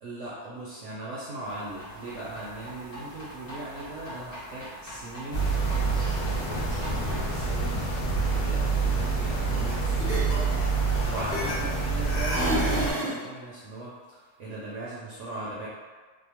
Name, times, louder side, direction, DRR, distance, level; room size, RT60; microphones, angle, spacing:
voice 1, 0.0-10.5 11.0-13.9 14.4-15.7, right 2 dB, 70° right, -8 dB, 0.7 m, -39 dB
sound 1, 1.4-7.1, equal, 20° left, 0.6 m, -43 dB
sound 2, 5.3-12.9, right 4 dB, 65° left, 1.0 m, -27 dB
sound 3, 9.5-9.7 10.0-11.8 12.1-13.2, equal, 45° left, 1.1 m, -29 dB
2.7 x 2.1 x 2.9 m, 1.5 s
omnidirectional pair, 1.7 m